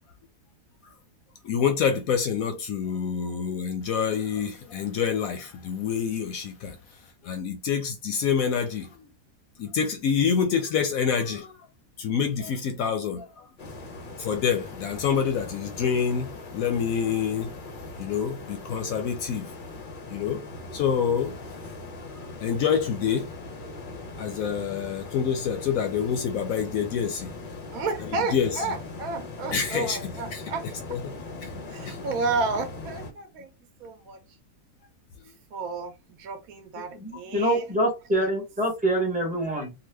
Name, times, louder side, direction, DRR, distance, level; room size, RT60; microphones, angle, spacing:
voice 1, 1.4-9.1 9.6-11.5 12.0-13.5 14.2-19.5 20.1-20.4 20.7-21.6 22.4-23.3 24.2-27.3 28.3-28.6 29.5-30.4 30.9-31.1 31.4-31.5 31.9-32.0 36.9-37.0, left 7 dB, 70° left, 0.9 m, -27 dB
sound 1, 13.6-33.1, left 2 dB, 50° left, 0.6 m, -40 dB
voice 2, 27.7-30.7 31.7-33.5 33.8-34.2 35.5-37.6, right 4 dB, 70° right, 1.0 m, -31 dB
voice 3, 37.0-39.7, right 1 dB, 5° right, 0.7 m, -25 dB
2.9 x 2.3 x 3.2 m
omnidirectional pair, 1.7 m